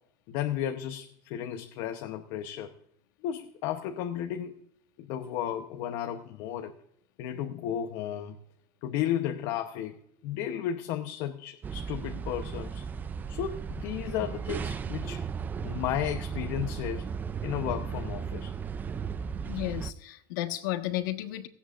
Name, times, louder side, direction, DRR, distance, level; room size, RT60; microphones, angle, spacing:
voice 1, 0.3-2.7 3.2-4.6 5.0-6.7 7.2-8.4 8.8-10.0 10.2-12.9 13.3-15.2 15.6-17.0 17.4-18.5, left 10 dB, 55° left, 6 dB, 0.9 m, -33 dB
sound 1, 11.6-19.9, right 6 dB, 15° right, 0.4 m, -35 dB
voice 2, 19.4-21.5, left 15 dB, 80° left, 7 dB, 1.4 m, -33 dB
17.5 x 16.5 x 2.5 m, 0.73 s
supercardioid pair, 155°, 10 cm